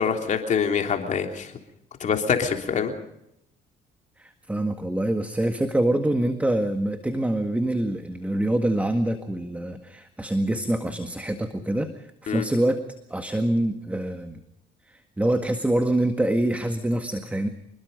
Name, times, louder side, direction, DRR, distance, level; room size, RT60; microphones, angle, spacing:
voice 1, 0.0-1.5 2.0-2.9 12.3-12.4, left 6 dB, 45° left, 4 dB, 3.3 m, -25 dB
voice 2, 4.2-11.9 12.2-12.8 13.1-14.4 14.9-17.5, right 1 dB, 10° right, 7 dB, 1.8 m, -25 dB
26.5 x 21.0 x 5.3 m, 0.78 s
cardioid pair, 110°, 17 cm